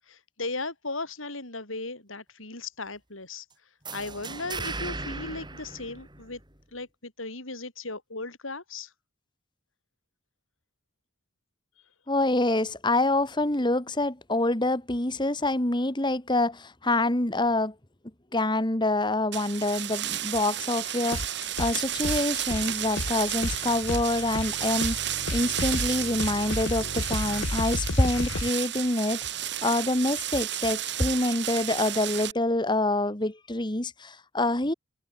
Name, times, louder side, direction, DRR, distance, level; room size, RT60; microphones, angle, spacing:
voice 1, 0.0-3.5 3.9-6.4 6.7-8.9, left 3 dB, 90° left, 7.5 m, -37 dB
sound 1, 3.8-6.6, right 3 dB, 20° right, 7.3 m, -37 dB
voice 2, 12.1-17.7 18.3-34.7, left 2 dB, 25° left, 2.0 m, -26 dB
sound 2, 19.3-32.3, right 12 dB, 60° right, 3.4 m, -32 dB
sound 3, 21.1-21.8 22.0-28.5, left 2 dB, 70° left, 1.4 m, -33 dB
head